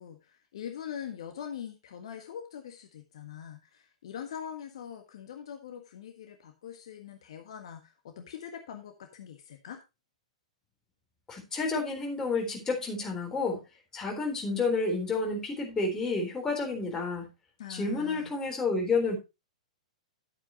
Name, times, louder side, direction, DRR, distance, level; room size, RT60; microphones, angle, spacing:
voice 1, 0.0-9.8 17.6-18.3, left 8 dB, 55° left, 5 dB, 1.5 m, -43 dB
voice 2, 11.3-13.6 13.9-17.3 17.7-19.2, left 3 dB, 15° left, 1 dB, 3.8 m, -30 dB
11.0 x 8.8 x 3.0 m, 0.26 s
figure-of-eight pair, 105°, 4 cm